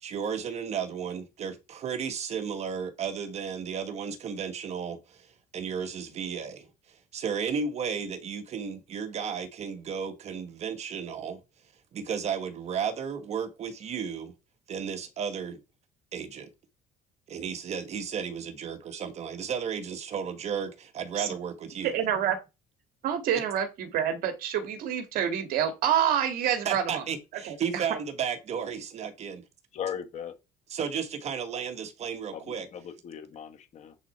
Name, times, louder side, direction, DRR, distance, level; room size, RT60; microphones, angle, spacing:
voice 1, 0.0-5.3 5.5-11.4 11.9-14.3 14.7-15.6 16.1-16.5 17.3-21.9 23.3-23.4 26.6-29.4 30.7-32.7, right 7 dB, 45° right, 1.4 m, -33 dB
voice 2, 21.8-22.4 23.0-27.0 27.4-27.8, right 9 dB, 65° right, 2.0 m, -27 dB
voice 3, 29.8-30.3 32.3-33.9, left 8 dB, 45° left, 1.5 m, -38 dB
9.7 x 4.1 x 4.4 m
cardioid pair, 130°, 16 cm